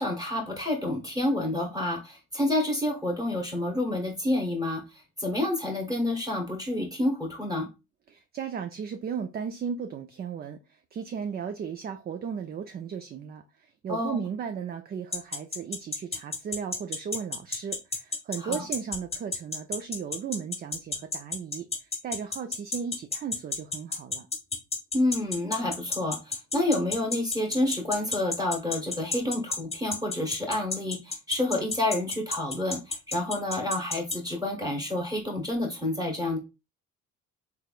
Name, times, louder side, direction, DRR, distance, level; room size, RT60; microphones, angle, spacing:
voice 1, 0.0-7.7 13.9-14.2 18.4-18.6 24.9-36.4, left 1 dB, 10° right, 1 dB, 1.1 m, -29 dB
voice 2, 8.1-24.3, right 7 dB, 30° right, 8 dB, 0.4 m, -36 dB
sound 1, 15.1-34.2, left 4 dB, 20° left, 0.8 m, -30 dB
3.4 x 3.3 x 2.3 m, 0.26 s
supercardioid pair, 80°, 32 cm